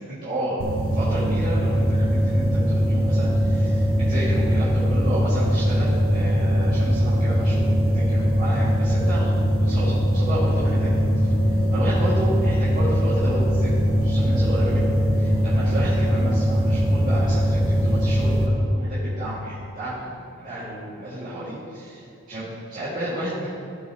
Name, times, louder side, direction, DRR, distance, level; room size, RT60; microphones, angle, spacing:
voice 1, 0.1-0.6 0.9-7.6 7.9-11.0 11.7-22.0 22.3-23.5, right 1 dB, 40° right, -12 dB, 2.4 m, -31 dB
sound 1, 0.6-18.5, equal, 70° right, 1.1 m, -21 dB
16.0 x 6.8 x 3.1 m, 2.6 s
head